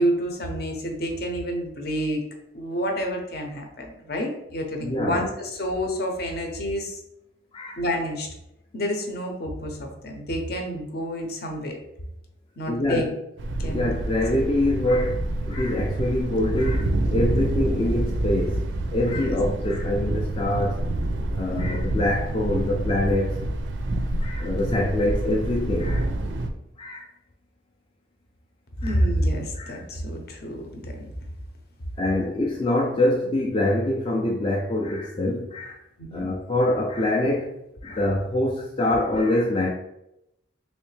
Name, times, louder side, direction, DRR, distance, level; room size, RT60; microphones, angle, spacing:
voice 1, 0.0-2.2 2.5-7.0 7.8-8.3 8.7-11.8 12.6-13.0 13.6-13.9 19.0-19.3 21.5-21.7 21.9-22.2 28.8-31.1 36.0-36.3 37.9-38.0, equal, 55° left, 3 dB, 0.7 m, -28 dB
voice 2, 4.8-5.3 7.5-7.8 12.7-13.1 13.6-18.6 18.9-20.8 21.3-23.4 24.2-26.1 26.8-27.1 28.8-28.9 29.5-29.8 32.0-35.8 36.1-37.5 37.8-39.7, left 1 dB, 30° left, -1 dB, 0.3 m, -25 dB
Thunder, 13.4-26.5, right 1 dB, 85° right, 0.4 m, -27 dB
3.2 x 3.1 x 3.1 m, 0.84 s
head